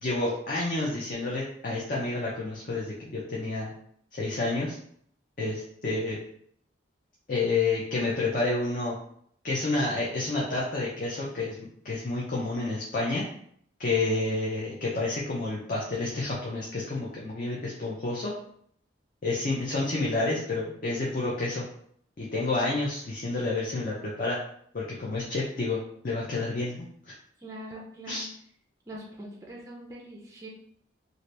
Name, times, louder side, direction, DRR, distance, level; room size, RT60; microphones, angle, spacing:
voice 1, 0.0-3.7 4.1-4.8 5.4-6.2 7.3-9.0 9.4-11.6 11.8-13.2 13.8-18.3 19.2-21.7 22.2-24.4 24.7-27.1 28.1-28.3, left 2 dB, 45° left, -4 dB, 0.5 m, -29 dB
voice 2, 27.4-28.3 28.9-30.5, right 1 dB, 15° right, -2 dB, 0.4 m, -42 dB
2.7 x 2.5 x 3.2 m, 0.66 s
head